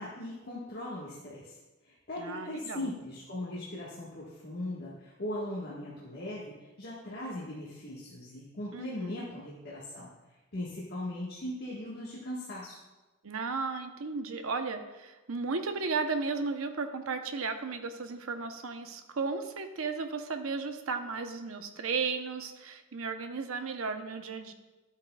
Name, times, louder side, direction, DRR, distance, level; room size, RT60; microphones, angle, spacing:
voice 1, 0.0-1.6 1.8-12.8, left 1 dB, 50° left, -6 dB, 1.4 m, -39 dB
voice 2, 2.2-2.9 8.7-9.2 13.2-24.5, right 4 dB, 75° right, 7 dB, 0.8 m, -35 dB
12.0 x 8.1 x 2.3 m, 1.1 s
head